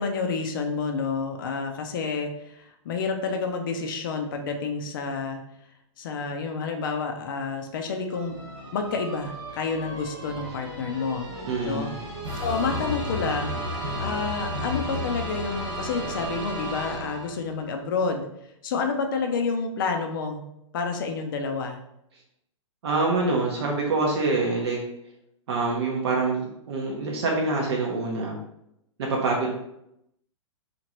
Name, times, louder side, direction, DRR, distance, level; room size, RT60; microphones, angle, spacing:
voice 1, 0.0-5.4 6.0-8.3 8.7-11.3 11.6-11.9 12.4-18.3 18.6-20.4 20.7-21.8, left 4 dB, 40° left, 4 dB, 0.4 m, -29 dB
sound 1, 8.1-17.6, equal, 30° right, 1.1 m, -33 dB
voice 2, 11.5-11.9 22.8-24.8 25.5-28.4 29.0-29.5, right 3 dB, 55° right, -1 dB, 0.7 m, -25 dB
2.9 x 2.5 x 2.9 m, 0.78 s
hypercardioid pair, 155°, 17 cm